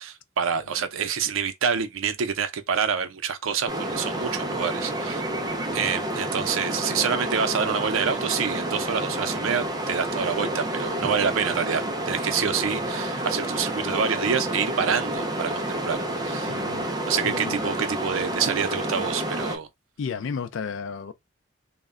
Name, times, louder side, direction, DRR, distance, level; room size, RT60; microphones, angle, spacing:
voice 1, 0.0-5.2 5.7-16.5 17.1-19.7, right 7 dB, 85° right, 0.5 m, -27 dB
sound 1, 3.7-19.6, right 1 dB, 20° right, 0.3 m, -29 dB
voice 2, 16.4-16.9 17.2-17.7 20.0-21.1, left 6 dB, 70° left, 0.3 m, -33 dB
2.1 x 2.1 x 3.5 m
head